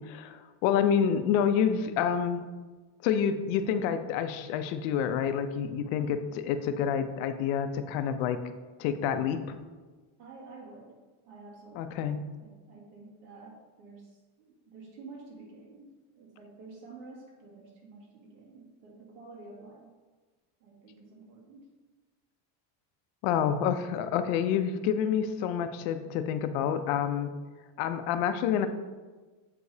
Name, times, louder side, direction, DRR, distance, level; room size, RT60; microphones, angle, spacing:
voice 1, 0.0-2.5 3.0-8.4 8.8-9.6 11.8-12.2 23.2-27.3 27.8-28.7, left 8 dB, 70° left, 10 dB, 0.6 m, -28 dB
voice 2, 10.2-11.0 11.3-19.9 20.6-21.7, right 3 dB, 90° right, -2 dB, 1.9 m, -50 dB
7.5 x 4.8 x 2.7 m, 1.3 s
cardioid pair, 180°, 49 cm